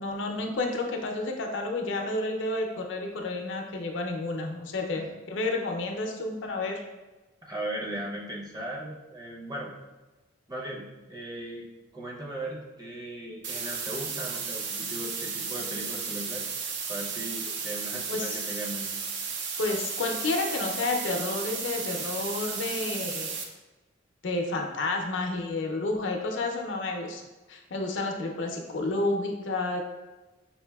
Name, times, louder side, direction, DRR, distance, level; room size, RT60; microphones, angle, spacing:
voice 1, 0.0-6.8 18.1-18.4 19.6-23.3 24.2-27.2 27.5-29.8, left 2 dB, 70° left, 3 dB, 0.5 m, -30 dB
voice 2, 7.4-9.7 10.5-11.7 11.9-16.4 16.9-18.9, right 1 dB, 20° right, -3 dB, 0.6 m, -37 dB
sound 1, 13.4-23.4, right 5 dB, 65° right, 0.5 m, -34 dB
5.5 x 2.5 x 2.3 m, 1.1 s
head